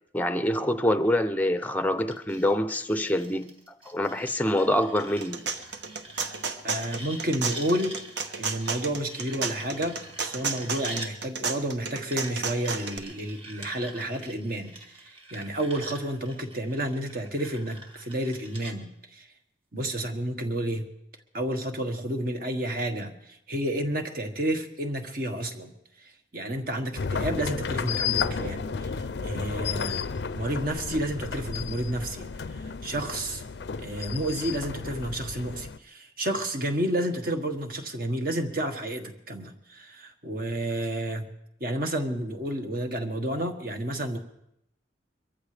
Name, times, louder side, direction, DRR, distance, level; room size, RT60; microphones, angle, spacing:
voice 1, 0.1-3.5 3.8-5.4, left 1 dB, 10° left, 0.6 m, -25 dB
sound 1, 2.1-11.1 12.1-18.7, right 1 dB, 30° right, 2.0 m, -45 dB
sound 2, 5.0-13.0, right 5 dB, 65° right, 1.0 m, -32 dB
voice 2, 6.6-8.0 8.4-19.3 19.7-20.9 21.3-25.7 26.0-30.1 30.3-33.4 33.8-41.3 41.6-44.2, right 1 dB, 50° right, 1.5 m, -31 dB
sound 3, 27.0-35.8, left 6 dB, 65° left, 0.5 m, -32 dB
23.0 x 14.5 x 3.4 m
head